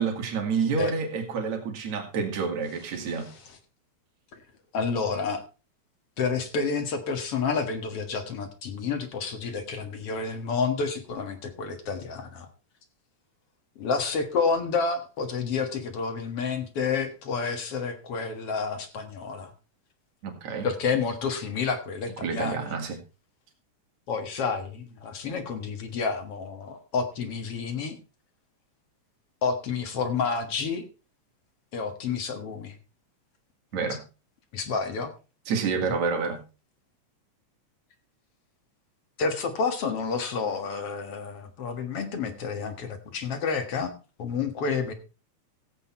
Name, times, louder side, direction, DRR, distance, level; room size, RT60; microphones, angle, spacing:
voice 1, 0.0-3.3 20.2-20.7 22.2-23.0 33.7-34.0 35.5-36.4, right 5 dB, 65° right, 3.6 m, -28 dB
voice 2, 2.8-3.6 4.3-4.4 4.7-5.4 6.2-12.5 13.8-19.5 20.6-22.8 24.1-28.0 29.4-30.8 31.7-32.8 33.7-34.0 34.5-35.1 35.8-36.0 39.2-44.9, left 5 dB, 55° left, 2.4 m, -30 dB
15.5 x 8.2 x 4.3 m
omnidirectional pair, 3.4 m